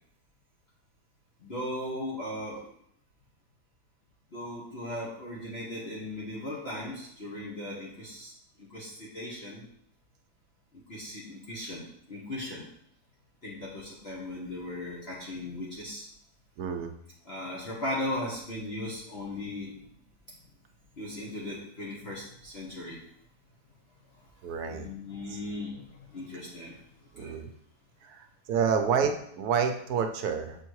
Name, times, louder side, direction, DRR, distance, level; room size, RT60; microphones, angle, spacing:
voice 1, 1.4-2.7 4.3-8.3 8.6-9.6 10.9-12.7 13.4-16.0 17.2-19.7 21.0-23.0 24.6-27.4, left 1 dB, 40° left, -6 dB, 1.4 m, -37 dB
voice 2, 16.6-16.9 24.4-24.9 25.3-25.4 27.1-27.5 28.0-30.6, right 6 dB, 70° right, 6 dB, 1.1 m, -29 dB
7.0 x 3.6 x 4.6 m, 0.71 s
omnidirectional pair, 1.8 m